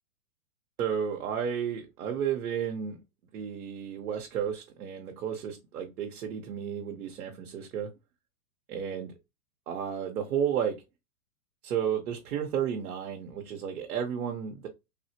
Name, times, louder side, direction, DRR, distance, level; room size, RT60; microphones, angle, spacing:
voice 1, 0.8-3.0 3.3-7.9 8.7-9.1 9.7-10.8 11.6-14.7, right 8 dB, 85° right, 2 dB, 0.8 m, -32 dB
3.5 x 2.0 x 2.7 m, 0.23 s
hypercardioid pair, 140°, 44 cm